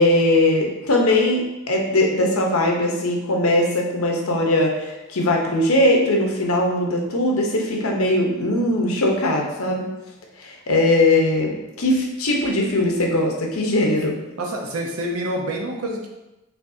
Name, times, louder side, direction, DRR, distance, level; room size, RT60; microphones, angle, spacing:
voice 1, 0.0-9.9 10.4-14.2, left 1 dB, 85° left, 0 dB, 0.9 m, -20 dB
voice 2, 14.4-16.1, right 1 dB, 75° right, 0 dB, 0.9 m, -27 dB
5.9 x 3.2 x 2.7 m, 0.96 s
head